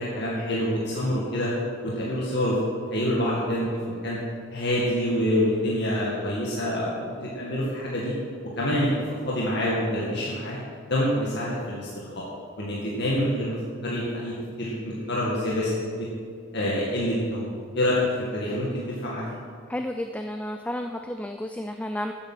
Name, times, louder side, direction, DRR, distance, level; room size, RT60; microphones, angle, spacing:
voice 1, 0.0-1.5 1.8-2.6 2.9-4.2 4.5-8.1 8.6-8.9 9.3-10.6 10.9-12.3 12.6-13.6 13.8-16.1 16.5-17.5 17.7-19.2, left 1 dB, 55° left, -6 dB, 2.0 m, -26 dB
voice 2, 19.7-22.1, left 1 dB, 5° left, 6 dB, 0.3 m, -32 dB
14.0 x 8.9 x 5.8 m, 2.2 s
head